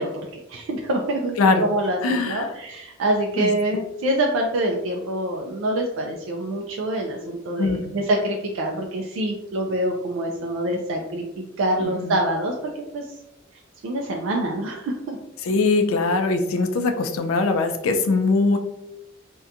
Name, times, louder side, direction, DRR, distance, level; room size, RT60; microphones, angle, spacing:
voice 1, 0.0-13.0 13.8-15.2, right 1 dB, 70° right, 0 dB, 0.3 m, -26 dB
voice 2, 2.0-2.5 3.4-3.5 7.6-7.9 11.8-12.2 15.4-18.6, left 3 dB, 85° left, 6 dB, 0.4 m, -21 dB
2.7 x 2.2 x 2.4 m, 0.87 s
head